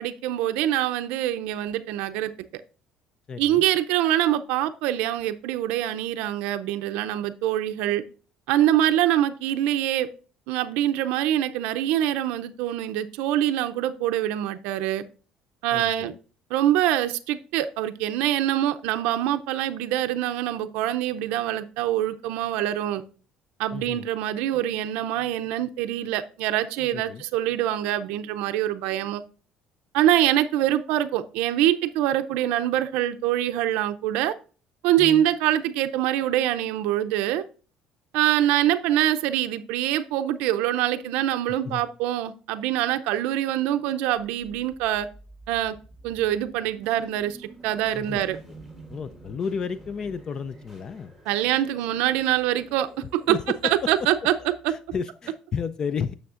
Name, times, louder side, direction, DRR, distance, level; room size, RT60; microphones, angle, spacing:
voice 1, 0.0-2.6 3.4-8.0 8.5-10.1 10.5-15.0 15.6-16.1 16.5-23.0 23.6-29.2 29.9-34.3 34.8-37.4 38.1-45.1 45.5-45.7 46.0-48.4 51.3-53.4 53.6-54.3, right 12 dB, 85° right, 9 dB, 0.4 m, -24 dB
voice 2, 3.3-3.6 15.7-16.2 23.7-24.1 26.9-27.2 35.0-35.3 41.6-41.8 47.9-48.3 48.9-51.1 53.3-53.9 54.7-56.1, left 6 dB, 30° left, 13 dB, 0.3 m, -32 dB
sound 1, 44.1-55.2, right 2 dB, 10° left, 3.3 m, -49 dB
9.4 x 6.3 x 2.4 m, 0.37 s
cardioid pair, 145°, 2 cm